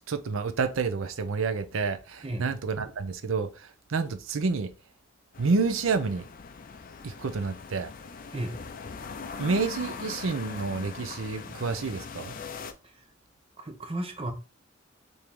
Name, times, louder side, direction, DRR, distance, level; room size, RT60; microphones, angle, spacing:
voice 1, 0.1-4.7 5.4-6.3 7.0-7.9 9.4-12.3, right 4 dB, 90° right, 0.6 m, -29 dB
sound 1, 5.3-12.7, left 5 dB, 45° left, 0.4 m, -41 dB
voice 2, 13.6-14.3, right 1 dB, 30° right, 0.8 m, -33 dB
4.6 x 2.7 x 3.5 m
head